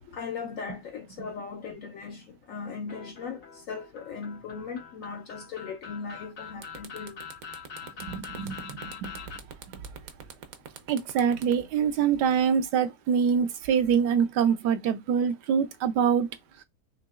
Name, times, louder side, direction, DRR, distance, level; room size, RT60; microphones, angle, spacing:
voice 1, 0.0-7.3, left 5 dB, 70° left, 0.8 m, -38 dB
sound 1, 2.9-9.4, left 6 dB, 90° left, 2.0 m, -44 dB
sound 2, 6.1-6.3 6.6-12.7, right 7 dB, 65° right, 1.0 m, -44 dB
voice 2, 8.0-9.2 10.9-16.3, right 7 dB, 80° right, 1.2 m, -25 dB
5.8 x 2.8 x 2.4 m
omnidirectional pair, 1.8 m